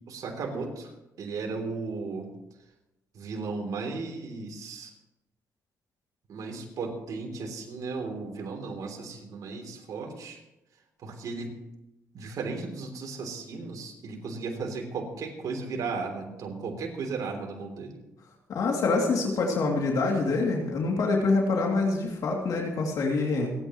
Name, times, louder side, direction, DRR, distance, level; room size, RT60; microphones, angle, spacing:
voice 1, 0.1-0.9 1.2-2.3 3.1-4.9 6.3-10.4 11.0-11.5 12.1-18.0, right 4 dB, 70° right, 1 dB, 3.3 m, -35 dB
voice 2, 18.5-23.5, left 3 dB, 70° left, 0 dB, 2.9 m, -26 dB
29.0 x 9.9 x 3.2 m, 0.93 s
cardioid pair, 85°, 6 cm